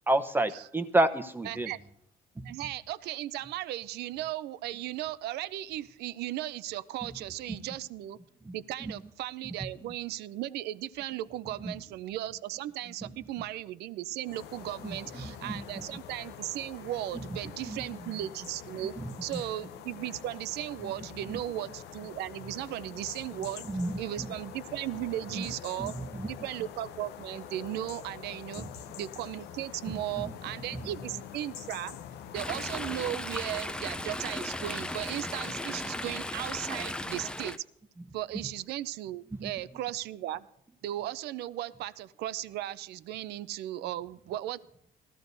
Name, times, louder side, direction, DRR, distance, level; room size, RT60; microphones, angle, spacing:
voice 1, 0.1-1.7 2.5-2.6 8.4-8.6 8.8-8.9 11.7-11.8 14.8-15.8 17.4-17.9 19.0-19.4 20.8-20.9 23.7-24.3 25.3-25.5 25.8-26.3 28.6-28.7 30.1-30.3 30.7-30.9 39.4-39.5, right 1 dB, 10° right, 0.9 m, -31 dB
voice 2, 1.5-1.8 2.4-8.2 8.5-18.9 19.2-23.6 24.0-25.9 26.3-28.7 29.0-32.0 32.3-37.6 38.1-40.4 40.8-44.6, right 14 dB, 75° right, 0.5 m, -36 dB
sound 1, 14.2-33.1, left 10 dB, 80° left, 0.8 m, -46 dB
Chatter / Stream, 32.3-37.6, left 1 dB, 5° left, 0.5 m, -36 dB
19.5 x 14.0 x 2.7 m
cardioid pair, 110°, 17 cm